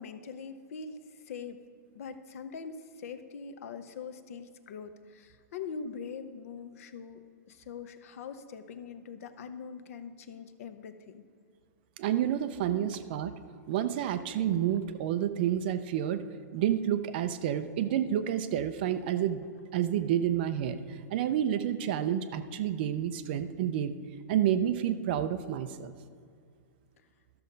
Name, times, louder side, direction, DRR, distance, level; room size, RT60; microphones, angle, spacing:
voice 1, 0.0-1.6 1.9-11.2, left 5 dB, 50° left, 10 dB, 0.8 m, -43 dB
voice 2, 12.0-13.3 13.7-16.2 16.5-23.9 24.3-25.9, right 10 dB, 30° right, 11 dB, 0.4 m, -29 dB
13.0 x 6.7 x 5.1 m, 2.3 s
hypercardioid pair, 170°, 10 cm